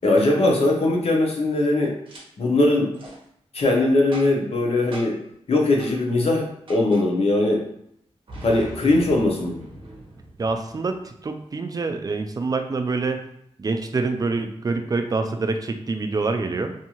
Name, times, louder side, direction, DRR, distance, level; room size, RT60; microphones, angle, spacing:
voice 1, 0.0-2.0 2.4-2.9 3.5-5.2 5.5-7.6 8.4-9.6, left 2 dB, 65° left, 0 dB, 0.7 m, -20 dB
Boom, 2.1-2.2 2.9-3.2 4.1-4.5 4.9-5.3 5.8-6.0 6.7-7.1 8.3-11.0, right 1 dB, 50° right, 0.8 m, -40 dB
voice 2, 10.4-13.2 13.6-16.7, right 3 dB, 35° right, 6 dB, 0.3 m, -26 dB
2.6 x 2.3 x 2.9 m, 0.73 s
wide cardioid pair, 75°, 11 cm